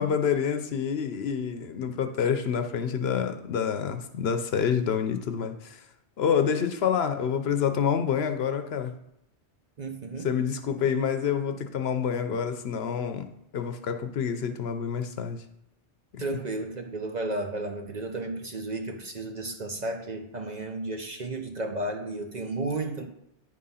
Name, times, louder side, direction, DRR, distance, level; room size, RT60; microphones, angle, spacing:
voice 1, 0.0-5.8 6.2-8.9 10.2-13.3 13.5-15.4 16.1-16.2, left 7 dB, 65° left, 8 dB, 0.8 m, -27 dB
voice 2, 9.8-10.3 16.2-23.1, right 2 dB, 45° right, 4 dB, 0.7 m, -33 dB
9.5 x 3.7 x 5.5 m, 0.80 s
omnidirectional pair, 1.2 m